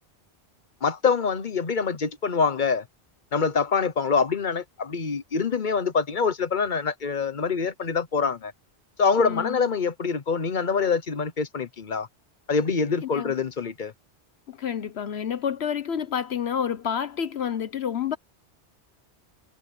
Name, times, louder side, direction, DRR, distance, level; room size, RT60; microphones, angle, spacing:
voice 1, 0.8-2.8 3.3-8.5 9.0-12.1 12.5-13.9, left 5 dB, 45° left, 1.1 m, -25 dB
voice 2, 9.2-9.6 13.0-13.3 14.5-18.2, left 8 dB, 70° left, 1.1 m, -29 dB
omnidirectional pair, 1.1 m